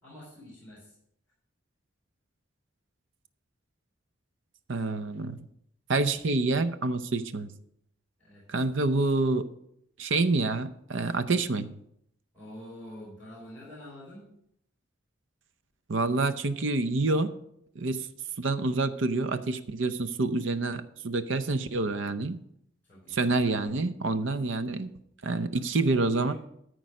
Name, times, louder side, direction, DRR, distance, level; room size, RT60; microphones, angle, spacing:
voice 1, 0.0-0.9 8.2-8.5 12.3-14.3 22.8-23.5 24.2-24.3 25.5-26.3, left 1 dB, 10° left, -7 dB, 5.1 m, -47 dB
voice 2, 4.7-5.4 5.9-7.5 8.5-9.5 10.0-11.7 15.9-17.3 17.8-18.1 18.4-22.4 23.1-24.9 25.2-26.3, right 3 dB, 70° right, 12 dB, 0.7 m, -27 dB
13.5 x 4.6 x 6.3 m, 0.73 s
head